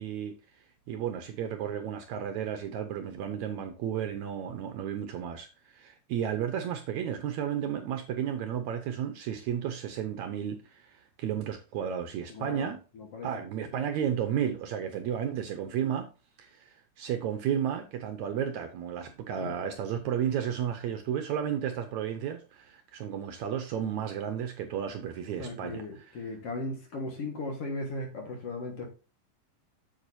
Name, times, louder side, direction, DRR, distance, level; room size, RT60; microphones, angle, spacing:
voice 1, 0.0-12.8 13.2-16.1 16.4-26.3, right 9 dB, 75° right, 1.8 m, -33 dB
voice 2, 12.3-13.3 13.6-13.7 19.4-19.5 25.4-28.9, left 2 dB, 50° left, 2.2 m, -37 dB
8.2 x 7.4 x 2.7 m
omnidirectional pair, 3.9 m